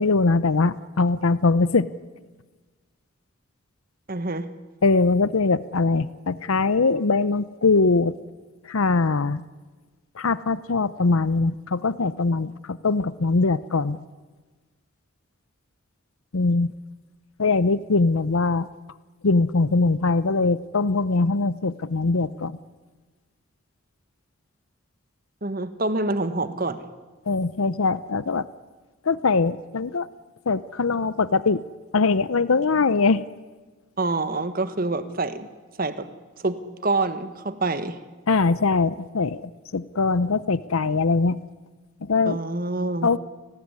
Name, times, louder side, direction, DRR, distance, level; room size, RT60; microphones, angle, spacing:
voice 1, 0.0-1.9 4.8-8.2 8.7-9.4 10.2-14.0 16.3-16.7 17.4-18.7 19.2-22.6 27.3-28.5 29.1-30.1 30.5-31.6 31.9-33.2 38.3-39.4 39.7-41.4 42.1-42.4 43.0-43.2, left 3 dB, 80° left, 17 dB, 0.7 m, -22 dB
voice 2, 4.1-4.5 25.4-26.8 34.0-35.5 35.8-36.1 36.4-36.6 36.8-38.0 42.2-43.1, right 2 dB, 40° right, 11 dB, 1.5 m, -26 dB
29.0 x 19.0 x 9.8 m, 1.3 s
head